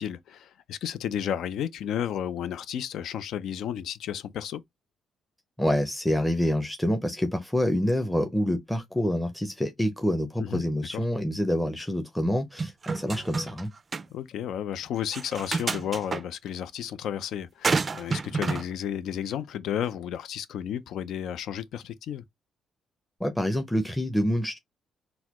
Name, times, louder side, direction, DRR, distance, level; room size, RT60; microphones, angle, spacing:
voice 1, 0.0-4.6 10.4-10.6 10.9-11.0 14.1-22.2, left 9 dB, 75° left, 0.4 m, -32 dB
voice 2, 5.6-13.7 23.2-24.6, equal, 5° left, 0.6 m, -27 dB
sound 1, 12.6-13.6 13.9-14.0 15.1-16.2 17.6-18.6, right 4 dB, 35° right, 0.3 m, -29 dB
4.0 x 2.2 x 2.9 m
cardioid pair, 90°, 0 cm